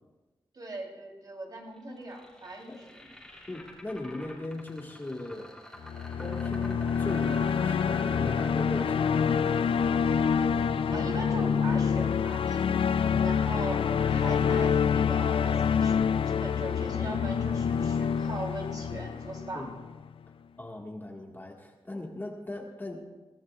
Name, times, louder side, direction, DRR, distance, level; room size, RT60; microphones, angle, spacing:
voice 1, 0.5-3.0 10.9-12.7 13.2-19.7, right 2 dB, 45° right, -1 dB, 3.3 m, -40 dB
sound 1, 1.8-13.8, left 1 dB, 5° left, 3.1 m, -47 dB
voice 2, 3.5-5.5 6.2-9.7 13.0-13.3 16.4-17.2 19.5-19.7 20.6-23.1, left 1 dB, 20° left, 0 dB, 1.7 m, -39 dB
sound 2, 5.8-20.0, left 7 dB, 80° left, 0.4 m, -27 dB
23.0 x 16.5 x 2.4 m, 1.1 s
wide cardioid pair, 140°, 9 cm